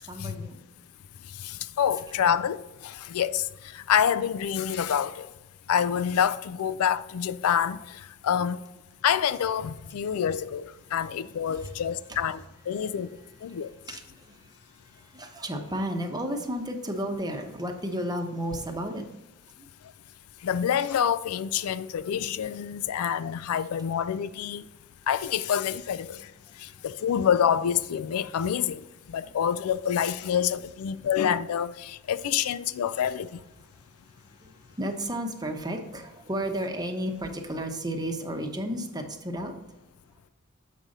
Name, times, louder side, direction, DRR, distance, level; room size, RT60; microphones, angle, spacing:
voice 1, 0.1-0.6 11.5-11.7 12.1-12.2 12.9-13.0 13.5-13.6 13.9-19.0 19.6-19.7 27.0-27.2 29.2-29.3 34.4-39.5, equal, 20° right, 0.8 m, -33 dB
voice 2, 1.4-3.4 3.7-5.3 5.7-7.8 8.2-8.6 9.0-13.2 13.4-13.7 20.4-24.6 25.1-26.2 26.8-33.3, left 8 dB, 70° left, 0.4 m, -27 dB
7.4 x 5.1 x 4.1 m
head